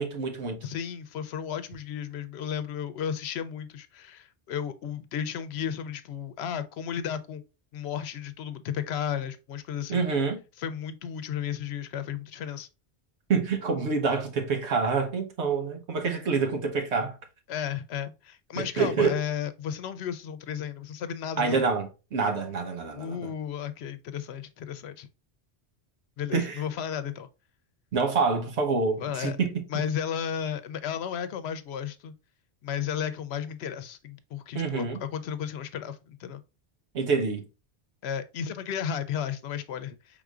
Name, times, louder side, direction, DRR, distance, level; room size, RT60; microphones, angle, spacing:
voice 1, 0.0-0.6 9.9-10.4 13.3-17.2 18.6-19.2 21.4-23.3 26.3-26.6 27.9-29.6 34.5-35.0 36.9-37.4, right 4 dB, 85° right, 1.2 m, -27 dB
voice 2, 0.6-7.4 7.7-10.0 10.6-12.7 17.5-21.6 23.0-25.1 26.2-27.3 29.0-29.4 29.7-32.1 32.6-36.4 38.0-40.2, left 8 dB, 75° left, 0.8 m, -34 dB
4.8 x 3.7 x 2.3 m
omnidirectional pair, 1.1 m